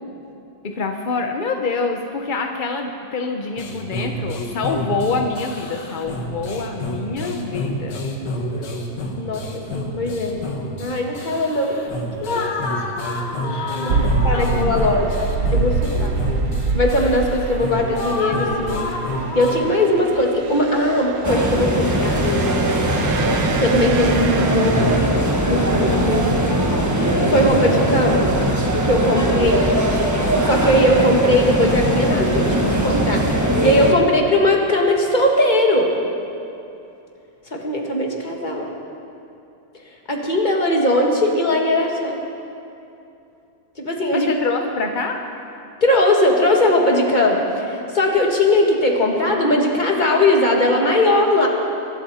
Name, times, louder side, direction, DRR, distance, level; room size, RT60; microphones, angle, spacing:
voice 1, 0.6-8.0 12.3-12.6 13.4-15.1 44.1-45.2, left 4 dB, 50° left, 4 dB, 0.6 m, -26 dB
sound 1, 3.6-19.6, left 1 dB, 75° left, 2.0 m, -28 dB
voice 2, 9.2-10.4 10.8-11.8 12.2-12.5 13.7-16.2 16.7-18.9 19.4-22.6 23.3-24.9 25.5-28.3 28.8-29.7 30.4-35.9 37.5-38.7 40.1-42.2 43.8-44.3 45.8-51.5, left 1 dB, 25° left, 0 dB, 1.8 m, -19 dB
sound 2, 13.9-25.0, right 4 dB, 60° right, 1.2 m, -26 dB
sound 3, 21.2-33.9, right 1 dB, 10° right, 1.0 m, -20 dB
23.5 x 12.5 x 4.2 m, 2.7 s
omnidirectional pair, 1.9 m